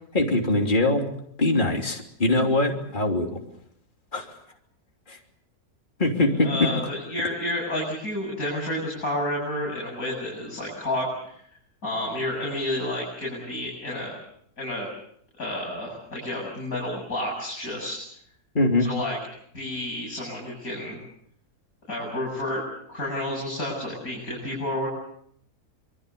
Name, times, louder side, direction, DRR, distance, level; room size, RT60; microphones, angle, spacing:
voice 1, 0.1-1.0 1.4-3.4 4.1-4.3 5.1-5.2 6.0-6.7 18.5-18.9, left 2 dB, 30° left, 2 dB, 3.4 m, -22 dB
voice 2, 6.4-11.1 11.8-14.2 14.6-14.9 15.4-18.0 18.8-19.2 19.5-21.0 21.9-22.6 22.9-24.9, left 1 dB, 60° left, -2 dB, 8.5 m, -30 dB
27.0 x 24.0 x 6.9 m, 0.69 s
omnidirectional pair, 1.7 m